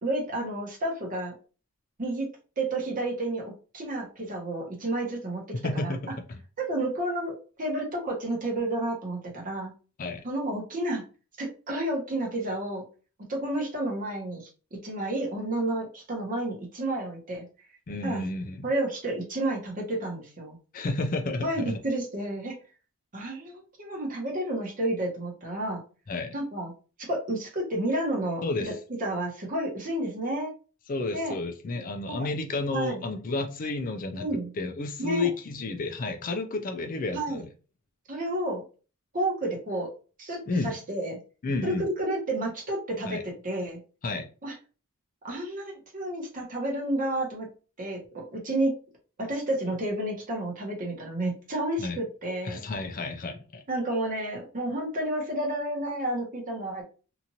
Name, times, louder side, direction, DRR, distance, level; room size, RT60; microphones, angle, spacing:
voice 1, 0.0-1.4 2.0-2.3 2.6-5.4 5.7-6.1 6.6-9.7 10.2-11.0 11.4-12.8 13.3-17.5 18.0-18.2 18.6-20.6 21.4-22.6 23.1-25.8 26.3-26.7 27.1-28.4 29.0-30.5 31.1-31.4 32.7-33.0 34.1-34.5 35.0-35.3 37.1-37.4 38.1-38.6 39.1-39.9 40.2-41.2 41.6-43.8 44.4-44.5 45.2-47.5 47.8-48.7 49.2-52.6 53.7-56.8, right 1 dB, 35° right, 1.0 m, -31 dB
voice 2, 5.6-6.1 10.0-10.2 17.9-18.7 20.7-21.8 26.1-26.3 28.4-28.7 30.9-34.3 34.6-37.5 40.5-40.7 41.4-41.9 43.1-43.2 44.0-44.3 51.8-52.0 52.4-53.6, left 3 dB, 40° left, 0.4 m, -31 dB
2.9 x 2.5 x 2.7 m
head